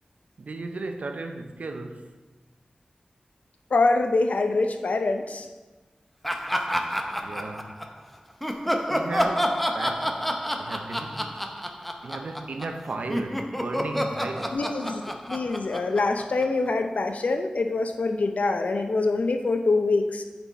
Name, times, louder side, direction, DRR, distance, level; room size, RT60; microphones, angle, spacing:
voice 1, 0.4-2.2 7.2-7.8 8.9-11.5 12.0-14.6, right 3 dB, 70° right, 0.6 m, -35 dB
voice 2, 3.7-5.5 14.5-20.2, left 3 dB, 70° left, 0.6 m, -25 dB
Laughter, 6.2-8.0 8.4-12.8 13.1-16.7, equal, 5° left, 0.6 m, -29 dB
8.8 x 4.4 x 4.1 m
wide cardioid pair, 85°, 3 cm